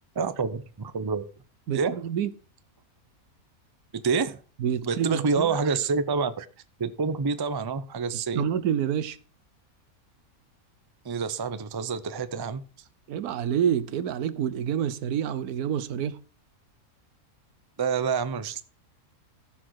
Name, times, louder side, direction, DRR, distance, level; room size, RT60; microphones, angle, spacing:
voice 1, 0.2-1.2 1.7-2.0 3.9-4.4 4.8-6.3 6.8-8.4 11.0-12.6 17.8-18.6, right 5 dB, 35° right, 0.4 m, -27 dB
voice 2, 1.7-2.3 4.6-5.5 8.3-9.2 13.1-16.2, right 9 dB, 90° right, 1.3 m, -27 dB
14.5 x 6.4 x 4.7 m
omnidirectional pair, 1.5 m